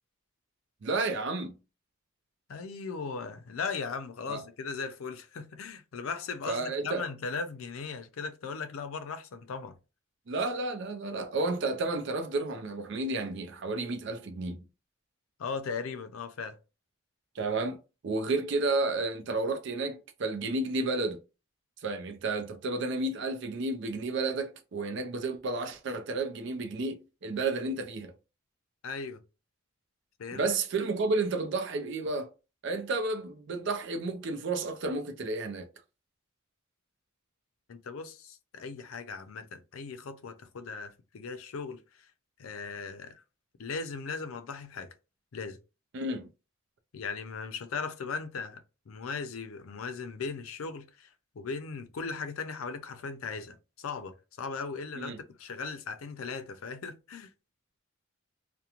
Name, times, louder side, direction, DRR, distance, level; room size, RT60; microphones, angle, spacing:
voice 1, 0.8-1.5 4.3-4.4 6.5-7.0 10.3-14.6 17.4-17.8 18.0-21.2 21.8-28.1 30.3-32.3 32.6-35.7 45.9-46.3 55.0-55.2, right 3 dB, 60° right, 0.4 m, -31 dB
voice 2, 2.5-9.8 15.4-16.6 28.8-29.2 30.2-30.5 37.7-42.1 42.4-43.2 43.6-44.9 45.3-45.6 46.9-51.1 51.3-57.3, left 5 dB, 85° left, 0.5 m, -38 dB
2.9 x 2.1 x 2.4 m
head